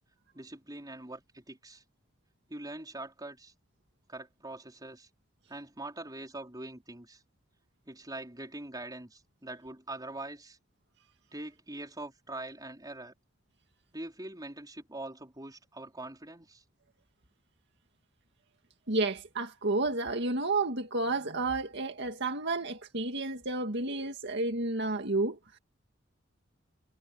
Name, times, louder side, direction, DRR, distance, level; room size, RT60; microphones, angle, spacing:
voice 1, 0.3-1.8 2.5-3.5 4.1-5.1 5.5-7.2 7.9-10.6 11.3-13.1 13.9-16.6, right 2 dB, 20° right, 4.8 m, -43 dB
voice 2, 18.9-25.4, right 2 dB, 65° right, 2.1 m, -31 dB
head